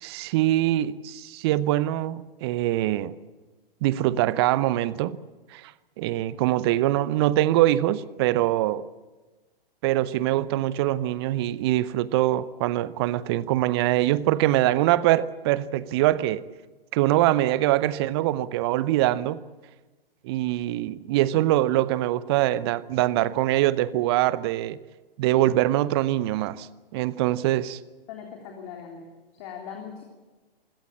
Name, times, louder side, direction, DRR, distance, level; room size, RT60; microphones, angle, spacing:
voice 1, 0.0-3.1 3.8-5.2 5.5-5.7 6.0-8.8 9.8-16.4 16.9-19.4 20.2-24.8 25.2-26.7 26.9-27.8, right 15 dB, 25° right, 0.7 m, -23 dB
voice 2, 28.1-29.1 29.3-30.0, left 7 dB, 35° left, 3.5 m, -40 dB
27.0 x 16.5 x 8.7 m
figure-of-eight pair, 125°, 30 cm